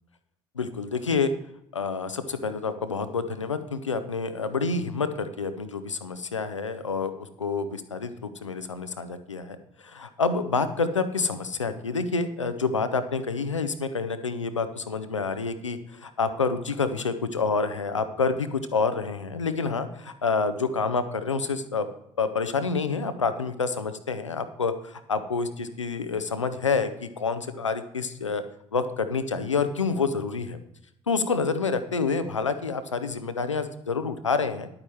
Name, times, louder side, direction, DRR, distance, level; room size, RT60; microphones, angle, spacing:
voice 1, 0.6-1.3 1.7-7.1 7.4-21.9 22.2-28.4 28.7-30.6 31.1-34.7, left 4 dB, 85° left, 11 dB, 0.7 m, -28 dB
11.0 x 8.8 x 4.6 m, 0.75 s
figure-of-eight pair, 55°, 15 cm